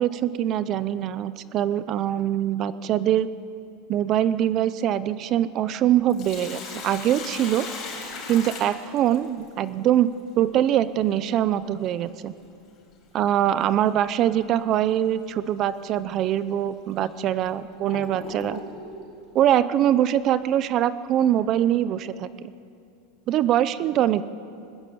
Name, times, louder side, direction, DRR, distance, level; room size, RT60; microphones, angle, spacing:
voice 1, 0.0-3.3 3.9-7.7 8.3-12.3 13.1-18.6 19.3-22.5 23.3-24.2, right 11 dB, 30° right, 15 dB, 0.6 m, -23 dB
Sink (filling or washing), 5.9-9.5 11.9-12.0 13.9-14.1 14.6-14.7 15.5-15.6 16.3-16.4 17.0-18.9, left 4 dB, 30° left, 5.1 m, -37 dB
20.5 x 19.5 x 8.6 m, 2.5 s
supercardioid pair, 165°, 0 cm